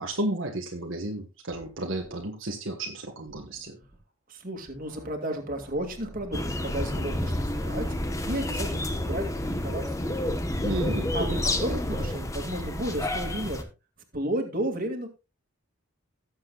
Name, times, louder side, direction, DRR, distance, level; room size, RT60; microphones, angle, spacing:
voice 1, 0.0-3.8 10.6-11.4, right 1 dB, 65° right, 2 dB, 1.4 m, -32 dB
sound 1, 1.5-1.7 2.0-2.2 3.3-4.0 4.7-5.1 5.4-7.9, equal, ahead, 4.4 m, -51 dB
voice 2, 4.3-7.9 8.3-9.3 9.6-10.2 11.1-13.7 14.1-15.1, right 1 dB, 40° right, 3 dB, 2.2 m, -33 dB
sound 2, 6.3-13.6, left 1 dB, 15° left, 1.0 m, -29 dB
17.5 x 7.6 x 2.4 m, 0.28 s
head